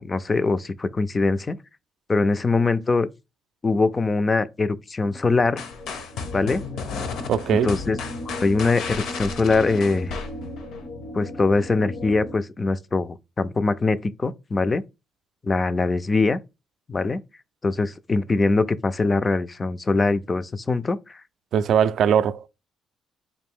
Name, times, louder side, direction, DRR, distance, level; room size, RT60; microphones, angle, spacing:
voice 1, 0.0-1.6 2.1-3.1 3.6-5.6 6.3-6.6 7.6-8.0 8.4-10.2 11.1-14.8 15.4-16.4 16.9-17.2 17.6-21.2, left 3 dB, 25° left, 0.3 m, -22 dB
sound 1, 5.0-12.3, left 1 dB, 90° left, 1.7 m, -37 dB
sound 2, 5.6-10.8, left 5 dB, 70° left, 0.8 m, -34 dB
voice 2, 7.3-7.7 21.5-22.5, right 8 dB, 60° right, 0.3 m, -20 dB
4.1 x 2.6 x 3.5 m
cardioid pair, 130°, 0 cm